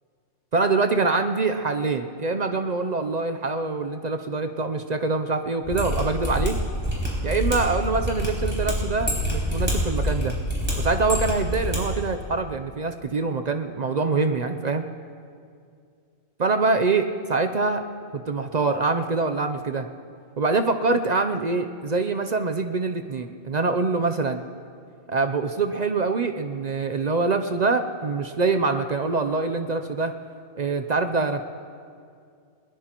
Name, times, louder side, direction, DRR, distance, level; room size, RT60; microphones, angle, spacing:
voice 1, 0.5-6.6 7.2-10.3 10.7-14.9 16.4-17.8 18.3-19.9 20.4-24.4 25.1-30.1 30.6-31.4, right 3 dB, 50° right, 7 dB, 0.5 m, -24 dB
Mechanisms, 5.6-11.8 12.0-12.1, equal, 10° right, 4.4 m, -26 dB
20.5 x 20.5 x 3.0 m, 2.3 s
omnidirectional pair, 1.3 m